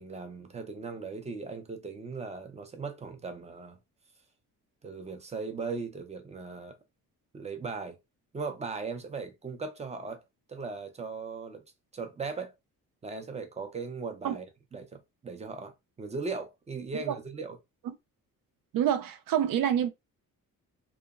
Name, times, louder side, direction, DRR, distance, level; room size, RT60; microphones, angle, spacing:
voice 1, 0.0-3.8 4.8-6.8 7.3-8.0 8.3-10.2 10.5-11.6 11.9-12.5 13.0-14.5 14.7-17.6, right 4 dB, 20° right, 0.4 m, -38 dB
voice 2, 18.7-19.9, right 10 dB, 75° right, 0.5 m, -26 dB
2.8 x 2.2 x 2.3 m
cardioid pair, 155°, 34 cm